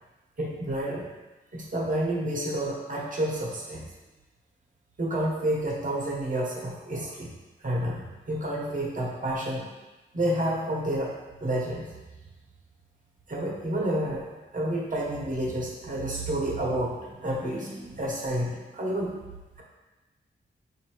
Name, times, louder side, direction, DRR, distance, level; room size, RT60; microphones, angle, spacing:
voice 1, 0.4-1.1 1.5-3.9 5.0-7.3 7.6-9.7 10.1-11.1 11.4-11.9 13.3-14.3 14.5-19.1, right 1 dB, 40° right, -3 dB, 1.0 m, -29 dB
4.4 x 2.6 x 3.0 m, 1.1 s
cardioid pair, 60°, 21 cm